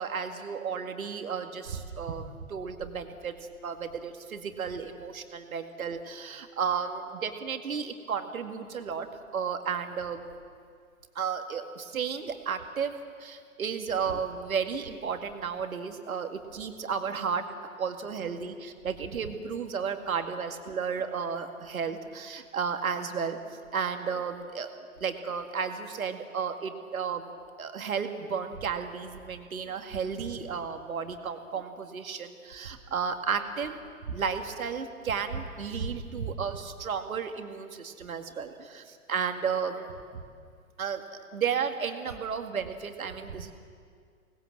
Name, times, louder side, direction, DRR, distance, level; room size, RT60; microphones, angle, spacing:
voice 1, 0.0-3.4 3.6-9.1 9.3-10.4 11.2-12.9 13.2-17.5 17.8-23.4 23.7-24.7 25.0-27.3 27.6-40.2 40.8-41.0 41.3-43.5, right 6 dB, 70° right, 6 dB, 2.2 m, -33 dB
25.5 x 19.5 x 7.6 m, 2.2 s
figure-of-eight pair, 115°, 44 cm